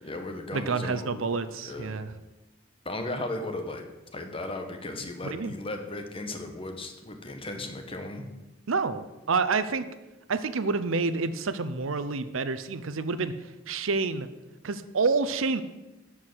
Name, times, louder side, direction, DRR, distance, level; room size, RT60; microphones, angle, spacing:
voice 1, 0.0-1.2 1.6-2.0 2.8-3.8 4.1-8.2, left 2 dB, 25° left, 5 dB, 1.2 m, -36 dB
voice 2, 0.5-2.2 5.2-5.5 8.7-9.9 10.3-14.3 14.6-15.6, right 4 dB, 75° right, 12 dB, 0.7 m, -28 dB
11.5 x 4.8 x 7.9 m, 1.0 s
head